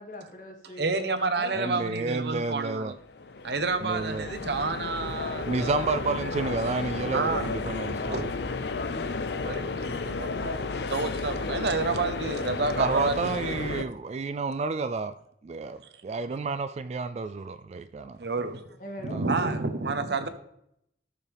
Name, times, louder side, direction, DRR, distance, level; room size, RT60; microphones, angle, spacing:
voice 1, 0.0-1.8 18.8-19.2, left 1 dB, 45° left, 1.7 m, -43 dB
voice 2, 0.8-2.9 3.4-6.0 7.1-7.5 8.1-8.5 9.4-9.7 10.0-13.5 18.2-18.6 19.0-20.3, right 3 dB, 65° right, 0.9 m, -30 dB
voice 3, 1.5-2.9 3.8-4.3 5.5-8.3 12.8-15.1 15.4-18.2 19.1-19.3, right 4 dB, 35° right, 0.3 m, -30 dB
sound 1, 3.0-13.8, left 3 dB, 65° left, 0.6 m, -33 dB
13.5 x 6.8 x 3.4 m
head